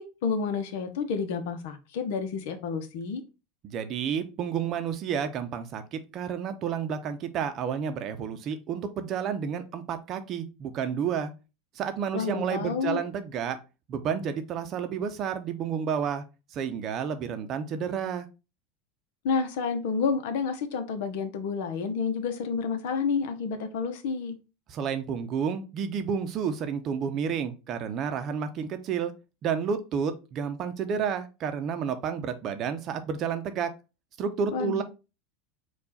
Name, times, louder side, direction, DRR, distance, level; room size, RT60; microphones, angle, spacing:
voice 1, 0.0-3.2 12.1-13.0 19.2-24.4 34.5-34.8, left 5 dB, 70° left, 0.8 m, -30 dB
voice 2, 3.6-11.3 11.8-13.6 13.9-16.2 16.5-18.3 24.7-29.1 29.4-33.7 34.2-34.8, right 7 dB, 40° right, 0.7 m, -30 dB
4.4 x 2.4 x 4.1 m
supercardioid pair, 110°, 0 cm